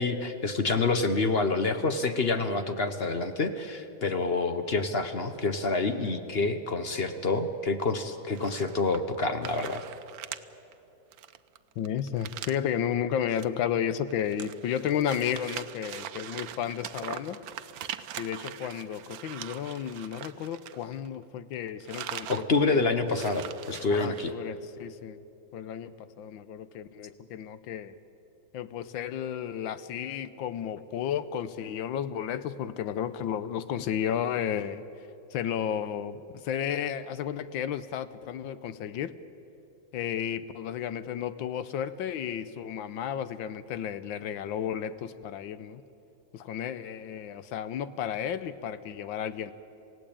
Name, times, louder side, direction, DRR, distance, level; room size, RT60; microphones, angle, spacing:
voice 1, 0.0-9.8 22.3-24.3, left 3 dB, 45° left, 9 dB, 0.9 m, -27 dB
sound 1, 8.4-9.2 9.4-10.4 10.7-10.8 11.1-12.7 13.2-13.5 13.8-21.2 21.5-22.5 22.7-22.8 23.0-24.3, right 11 dB, 75° right, 1.5 m, -41 dB
voice 2, 11.8-17.4 18.2-23.0 23.9-25.2 25.5-27.9 28.5-34.8 35.3-39.1 39.9-45.8 46.3-49.5, left 9 dB, 80° left, 14 dB, 1.5 m, -33 dB
27.5 x 16.5 x 8.7 m, 2.9 s
omnidirectional pair, 2.1 m